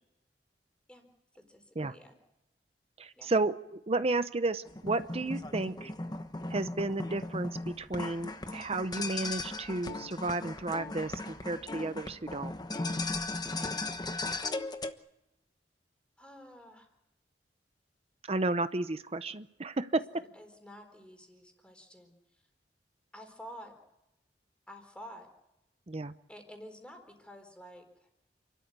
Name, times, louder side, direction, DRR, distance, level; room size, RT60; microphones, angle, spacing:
voice 1, 1.3-2.2 3.1-3.3 5.6-5.8 16.2-16.9 20.2-22.4 23.1-23.7 24.7-25.3 26.3-28.1, equal, 5° left, 4 dB, 4.2 m, -50 dB
voice 2, 3.0-5.9 6.5-12.5 18.3-20.0 25.9-26.1, right 2 dB, 35° right, 12 dB, 0.8 m, -32 dB
sound 1, 4.7-14.9, left 2 dB, 25° left, 1.1 m, -37 dB
29.0 x 13.0 x 9.5 m, 0.87 s
head